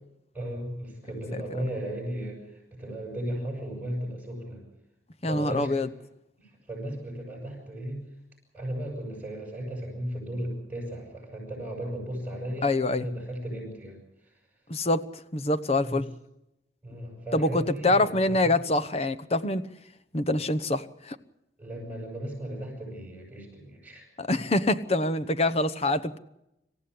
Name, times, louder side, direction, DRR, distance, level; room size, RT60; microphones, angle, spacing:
voice 1, 0.3-4.6 5.2-5.8 6.4-8.0 8.5-14.3 15.8-16.0 16.8-18.6 21.6-24.1, right 1 dB, 10° right, 8.0 m, -36 dB
voice 2, 5.2-5.9 12.6-13.1 14.7-15.1 15.3-16.1 17.3-19.7 20.1-21.2 24.2-26.2, left 2 dB, 35° left, 1.0 m, -25 dB
26.5 x 15.5 x 8.5 m
head